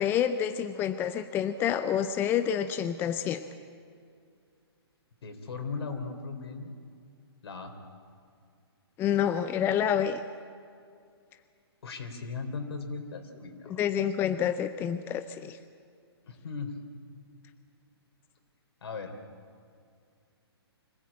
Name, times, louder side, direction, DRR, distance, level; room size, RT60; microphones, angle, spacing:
voice 1, 0.0-3.4 9.0-10.2 13.8-15.6, left 9 dB, 15° left, 10 dB, 0.6 m, -28 dB
voice 2, 5.2-6.7 7.4-7.7 11.8-13.8 16.2-16.8 18.8-19.1, left 4 dB, 70° left, 6 dB, 4.0 m, -37 dB
25.0 x 16.5 x 8.7 m, 2.3 s
hypercardioid pair, 145°, 14 cm